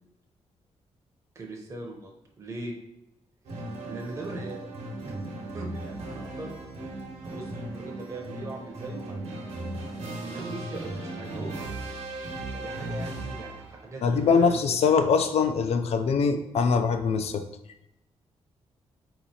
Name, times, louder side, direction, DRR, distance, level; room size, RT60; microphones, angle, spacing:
voice 1, 1.3-2.7 3.5-4.7 5.0-6.6 7.2-9.6 10.2-11.6 12.5-14.6, right 2 dB, 25° right, 0 dB, 0.7 m, -40 dB
sound 1, 3.4-13.9, right 2 dB, 90° right, 1.0 m, -37 dB
voice 2, 14.0-17.5, left 5 dB, 65° left, 8 dB, 0.4 m, -23 dB
3.9 x 3.0 x 4.1 m, 0.84 s
wide cardioid pair, 130°, 11 cm